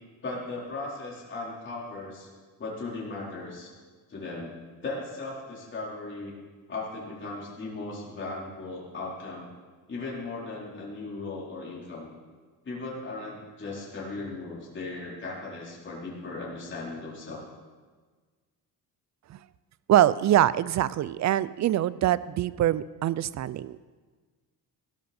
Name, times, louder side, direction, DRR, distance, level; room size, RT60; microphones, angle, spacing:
voice 1, 0.2-2.3 2.6-3.7 4.1-4.5 4.8-6.4 6.7-9.5 9.9-12.1 12.6-17.4, left 3 dB, 30° left, -5 dB, 4.2 m, -37 dB
voice 2, 19.9-23.8, right 12 dB, 50° right, 18 dB, 0.5 m, -24 dB
16.5 x 13.0 x 4.3 m, 1.4 s
cardioid pair, 125°, 37 cm